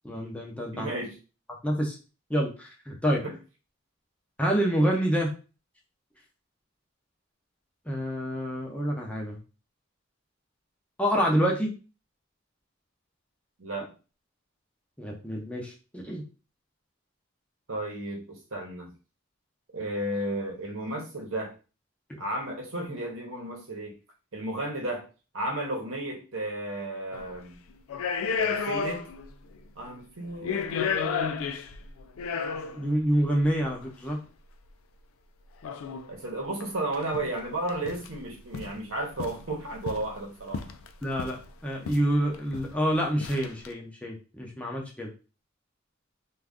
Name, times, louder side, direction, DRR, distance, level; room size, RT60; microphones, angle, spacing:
voice 1, 0.0-0.9 1.6-2.0 2.3-3.2 4.4-5.3 7.9-9.4 11.0-11.7 15.0-16.2 32.7-34.2 41.0-45.1, equal, 5° left, -1 dB, 0.6 m, -27 dB
voice 2, 0.7-1.2 3.2-3.4 13.6-13.9 17.7-18.9 19.7-21.5 22.2-23.9 24.3-25.1 25.3-27.6 28.4-29.1 29.8-31.5 36.1-40.7, right 1 dB, 70° right, 0 dB, 0.9 m, -33 dB
sound 1, 27.1-27.4 27.9-29.3 29.6-29.7 30.3-32.9 33.8-33.9 35.6-36.1 36.6-36.7 36.9-37.4 37.7-38.1 38.5-38.8 39.2-40.1 40.5-41.5 41.9-42.1 42.3-42.8 43.2-43.7, left 6 dB, 85° left, 0.4 m, -32 dB
2.5 x 2.3 x 3.5 m, 0.33 s
head